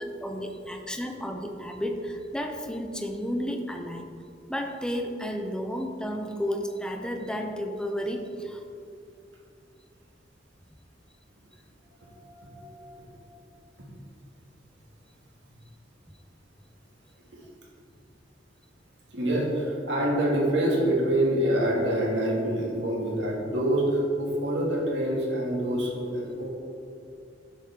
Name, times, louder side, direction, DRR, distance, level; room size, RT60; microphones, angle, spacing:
voice 1, 0.0-4.0 4.5-8.6, equal, 5° left, 4 dB, 0.7 m, -32 dB
voice 2, 11.8-13.2 19.1-26.5, right 1 dB, 75° right, -3 dB, 2.5 m, -26 dB
12.0 x 7.3 x 3.7 m, 2.5 s
head